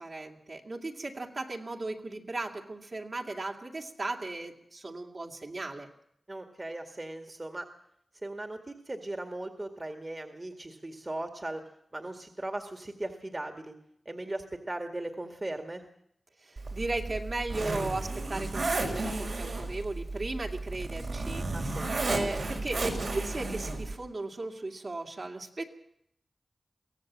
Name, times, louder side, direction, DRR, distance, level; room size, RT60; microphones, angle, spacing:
voice 1, 0.0-5.9 16.4-21.8 22.1-25.6, right 2 dB, 55° right, 1 dB, 2.6 m, -36 dB
voice 2, 6.3-7.6 8.1-11.6 11.9-13.7 14.1-15.8 21.5-22.1, right 1 dB, 35° right, 5 dB, 2.0 m, -38 dB
Zipper (clothing), 16.6-23.9, right 2 dB, 75° right, 4.9 m, -33 dB
23.0 x 16.5 x 7.5 m, 0.75 s
cardioid pair, 50°, 0 cm